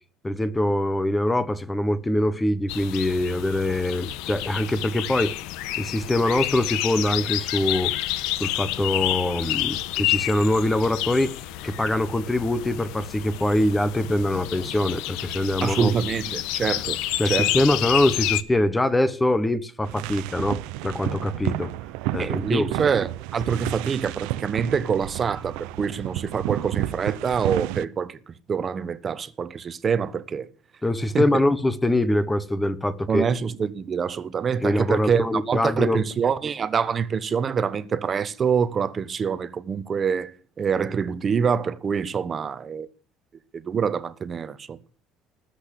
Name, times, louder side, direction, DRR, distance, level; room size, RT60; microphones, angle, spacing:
voice 1, 0.2-5.3 5.8-7.9 8.4-11.4 11.6-15.9 17.2-21.7 22.1-22.7 30.8-33.3 34.6-36.0, left 1 dB, 10° left, 1.2 m, -23 dB
sound 1, 2.7-18.4, left 15 dB, 75° left, 1.3 m, -29 dB
voice 2, 15.6-17.0 17.2-17.6 22.2-30.5 31.1-31.4 33.1-42.9 43.5-44.8, right 6 dB, 25° right, 1.2 m, -25 dB
sound 2, 19.8-27.8, right 16 dB, 85° right, 0.9 m, -31 dB
20.0 x 8.2 x 8.4 m
cardioid pair, 155°, 0 cm